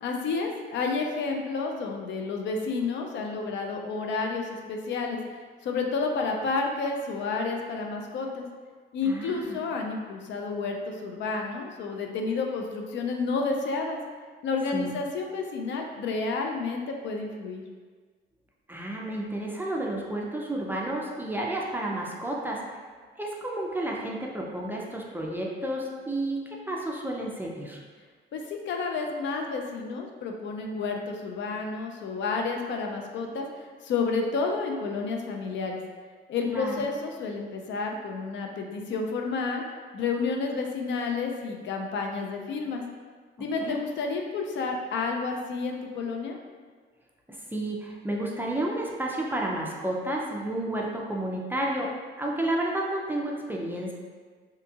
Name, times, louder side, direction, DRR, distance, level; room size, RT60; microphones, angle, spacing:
voice 1, 0.0-5.2 5.6-8.5 8.9-14.0 14.4-17.6 28.3-35.8 36.3-39.6 39.9-42.8 43.4-46.4, left 4 dB, 65° left, 2 dB, 0.4 m, -30 dB
voice 2, 9.0-9.6 14.7-14.9 18.7-22.8 23.2-27.8 36.5-36.8 43.6-43.8 47.3-51.9 52.2-53.9, right 1 dB, 10° right, -2 dB, 0.4 m, -31 dB
2.7 x 2.3 x 2.7 m, 1.5 s
cardioid pair, 90°, 20 cm